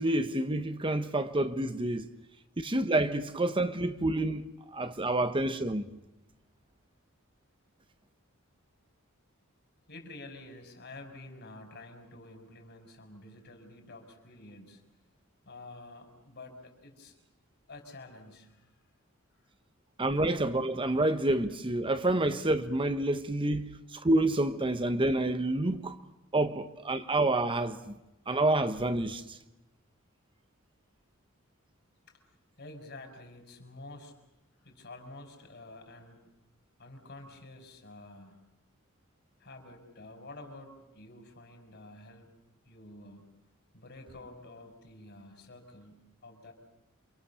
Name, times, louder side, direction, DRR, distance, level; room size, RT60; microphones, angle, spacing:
voice 1, 0.0-2.1 2.6-5.8 20.0-26.0 26.3-27.9 28.3-29.4, right 2 dB, 25° right, 0.9 m, -28 dB
voice 2, 9.9-14.8 15.5-17.1 17.7-18.7 19.3-19.4 32.1-32.2 32.6-34.1 34.6-36.2 36.8-38.4 39.4-42.3 42.6-43.3 43.7-46.5, left 2 dB, 55° left, 5.2 m, -49 dB
28.5 x 25.0 x 6.9 m
head